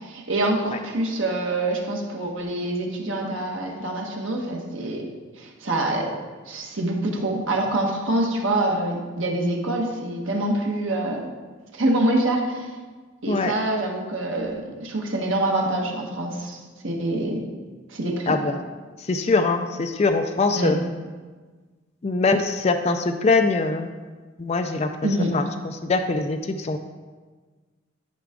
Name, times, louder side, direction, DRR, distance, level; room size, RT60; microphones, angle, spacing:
voice 1, 0.0-5.1 5.4-6.1 6.5-11.3 11.7-12.7 13.2-16.6 16.8-17.4 17.9-18.3 20.5-20.7 25.0-25.3, right 1 dB, 80° right, 0 dB, 1.3 m, -25 dB
voice 2, 18.3-18.6 19.0-20.8 22.0-23.9 24.4-24.9 25.3-26.8, left 3 dB, 35° left, 6 dB, 0.4 m, -23 dB
11.0 x 4.7 x 3.6 m, 1.4 s
head